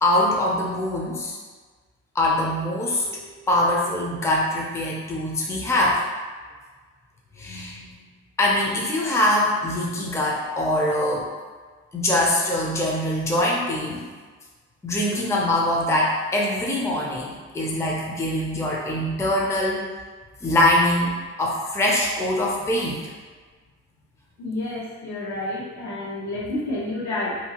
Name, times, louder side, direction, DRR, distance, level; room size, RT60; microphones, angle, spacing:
voice 1, 0.0-1.4 2.1-6.0 7.4-8.1 8.4-11.3 11.9-14.1 14.8-19.9 20.4-21.1 21.4-23.0, left 1 dB, 10° left, -3 dB, 0.5 m, -23 dB
voice 2, 24.4-27.4, left 2 dB, 70° left, -5 dB, 1.0 m, -29 dB
2.7 x 2.7 x 2.8 m, 1.4 s
cardioid pair, 90°, 30 cm